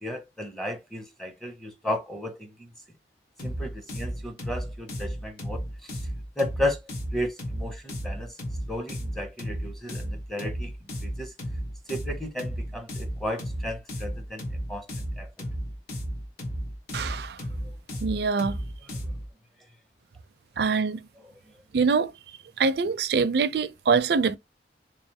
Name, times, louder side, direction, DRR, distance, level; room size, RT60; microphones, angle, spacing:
voice 1, 0.0-2.7 3.4-6.0 6.4-6.8 7.1-8.4 8.7-10.7 11.0-11.3 11.9-14.4 14.7-15.5 21.2-21.3, left 1 dB, ahead, 0.6 m, -34 dB
sound 1, 3.4-19.3, equal, 55° left, 1.0 m, -34 dB
voice 2, 16.9-17.4 18.0-18.6 20.6-21.0 21.7-22.1 22.6-24.4, right 5 dB, 60° right, 0.4 m, -24 dB
3.7 x 3.1 x 2.8 m
head